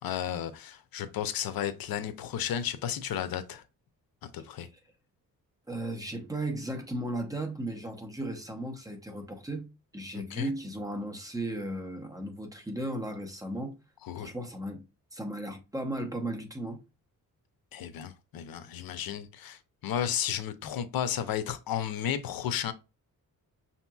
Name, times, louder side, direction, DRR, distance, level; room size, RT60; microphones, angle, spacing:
voice 1, 0.0-3.6 4.2-4.7 10.3-10.5 14.0-14.3 17.7-22.7, left 9 dB, 80° left, 0.6 m, -33 dB
voice 2, 5.7-9.7 9.9-13.8 14.1-14.8 15.1-16.8, right 1 dB, 10° right, 0.8 m, -35 dB
5.9 x 2.8 x 2.3 m
cardioid pair, 115°, 35 cm